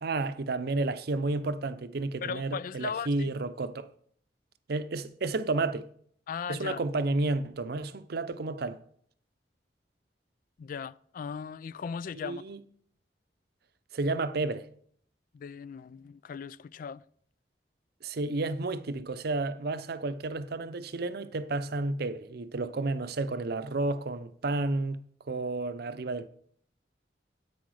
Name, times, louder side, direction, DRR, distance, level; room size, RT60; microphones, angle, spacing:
voice 1, 0.0-3.9 4.7-5.9 6.5-8.8 12.2-12.6 13.9-14.7 18.0-25.0 25.3-26.3, right 2 dB, 60° right, 0.6 m, -31 dB
voice 2, 2.2-3.3 6.3-6.8 10.6-12.4 15.3-17.0, left 6 dB, 50° left, 0.3 m, -37 dB
10.0 x 8.5 x 4.8 m
head